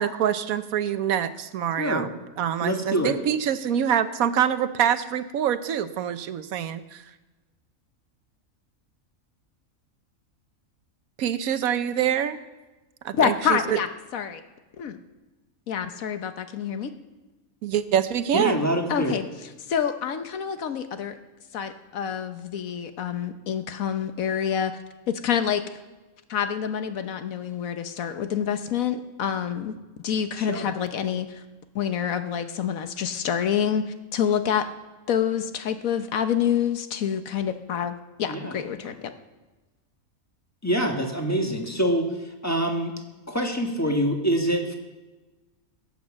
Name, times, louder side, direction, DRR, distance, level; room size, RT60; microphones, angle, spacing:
voice 1, 0.0-7.0 11.2-12.4 13.0-13.8 17.6-18.6, right 9 dB, 80° right, 12 dB, 1.2 m, -25 dB
voice 2, 1.8-2.1 2.6-3.1 18.3-19.1 30.4-30.7 38.2-38.6 40.6-42.9 43.3-44.7, equal, 10° left, 2 dB, 1.6 m, -25 dB
voice 3, 13.2-13.9 14.1-14.4 14.8-15.0 15.7-16.9 18.9-19.3 19.7-21.2 21.5-24.7 25.1-25.6 26.3-29.7 30.0-31.4 31.7-34.7 35.1-39.1, left 8 dB, 75° left, 9 dB, 1.3 m, -27 dB
16.5 x 8.8 x 7.4 m, 1.2 s
omnidirectional pair, 1.5 m